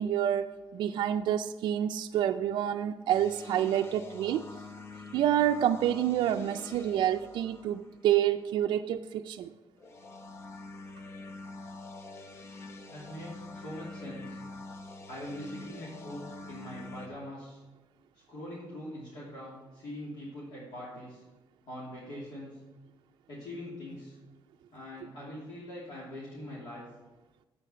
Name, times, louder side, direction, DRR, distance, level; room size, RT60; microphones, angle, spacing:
voice 1, 0.0-4.4 5.1-9.5, right 11 dB, 65° right, 5 dB, 0.4 m, -28 dB
sound 1, 3.1-8.2 9.8-17.1, left 3 dB, 30° left, 0.7 m, -46 dB
voice 2, 12.9-14.4 15.1-17.6 18.3-21.2 21.7-22.6 23.3-24.2 24.7-26.9, left 1 dB, 65° left, -7 dB, 2.9 m, -43 dB
8.7 x 8.3 x 5.6 m, 1.1 s
cardioid pair, 155°, 8 cm